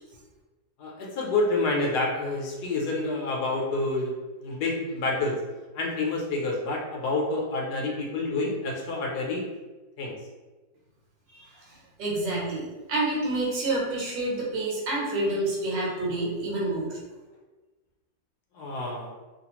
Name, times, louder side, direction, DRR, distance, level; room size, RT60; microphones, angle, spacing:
voice 1, 0.8-4.1 4.4-5.4 5.7-9.4 10.0-10.2 18.5-19.1, left 2 dB, 70° left, -1 dB, 1.1 m, -28 dB
voice 2, 11.3-17.0, right 2 dB, 90° right, -4 dB, 1.6 m, -28 dB
3.1 x 2.3 x 2.9 m, 1.2 s
omnidirectional pair, 1.9 m